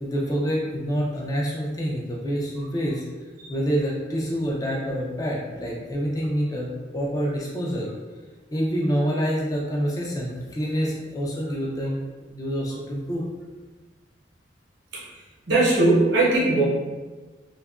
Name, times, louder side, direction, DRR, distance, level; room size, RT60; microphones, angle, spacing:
voice 1, 0.0-3.0 3.5-7.9 8.5-12.0 12.3-13.2, equal, 20° left, -3 dB, 0.3 m, -27 dB
voice 2, 15.5-16.6, right 2 dB, 65° right, -6 dB, 0.8 m, -19 dB
2.7 x 2.3 x 2.4 m, 1.3 s
head